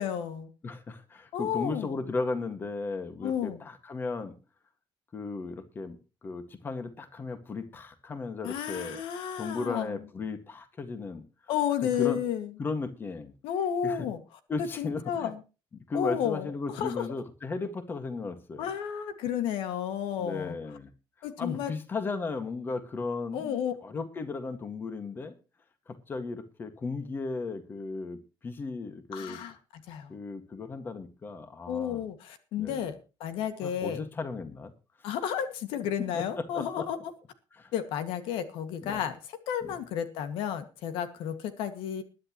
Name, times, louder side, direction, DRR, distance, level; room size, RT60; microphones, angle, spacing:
voice 1, 0.0-0.5 1.3-2.0 3.2-3.6 8.4-10.0 11.5-12.5 13.4-14.2 14.6-15.4 15.9-17.1 18.6-20.6 21.2-21.7 23.3-23.7 29.1-30.1 31.7-34.0 35.0-37.0 37.7-42.0, left 9 dB, 85° left, 9 dB, 2.1 m, -32 dB
voice 2, 0.6-4.4 5.1-6.0 6.2-9.0 9.4-11.2 11.8-12.2 12.6-13.3 13.8-14.1 14.5-15.3 15.9-18.7 20.2-20.9 21.4-25.4 25.9-29.4 30.1-32.0 32.6-32.9 33.6-34.7 36.0-36.9 37.5-37.7 38.8-39.0 39.6-39.8, left 3 dB, 25° left, 9 dB, 1.9 m, -35 dB
21.5 x 10.5 x 3.1 m, 0.32 s
cardioid pair, 165°, 9 cm